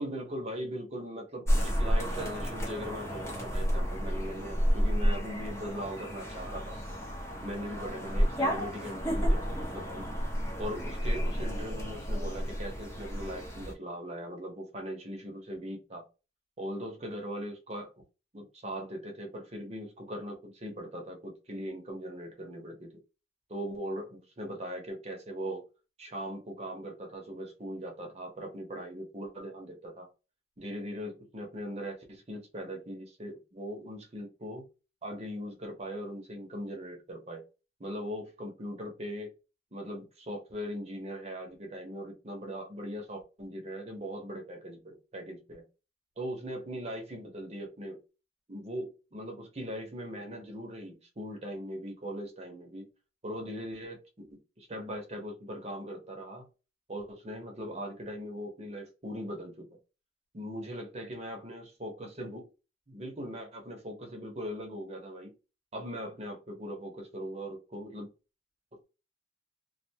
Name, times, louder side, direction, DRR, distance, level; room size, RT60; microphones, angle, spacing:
voice 1, 0.0-6.7 7.4-10.1 10.6-16.0 16.6-17.9 18.3-22.9 23.5-25.6 26.0-30.1 30.6-34.6 35.0-37.4 37.8-39.3 39.7-45.6 46.2-48.0 48.5-52.9 53.2-56.5 56.9-59.7 60.3-62.5 62.9-65.3 65.7-68.1, equal, 35° right, 0.8 m, -40 dB
sound 1, 1.5-13.7, equal, 15° left, 0.7 m, -31 dB
2.4 x 2.2 x 2.7 m
head